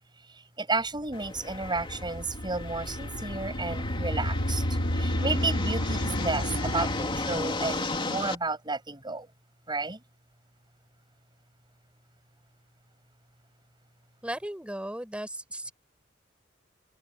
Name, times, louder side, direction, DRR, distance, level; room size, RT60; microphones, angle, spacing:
voice 1, 0.6-4.6 5.0-9.3 9.7-10.0, right 3 dB, 25° right, 7.3 m, -32 dB
sound 1, 1.0-7.9, equal, 80° left, 4.1 m, -32 dB
sound 2, 1.1-8.3, left 2 dB, 25° left, 2.9 m, -35 dB
voice 2, 14.2-15.7, right 1 dB, 5° right, 4.8 m, -36 dB
head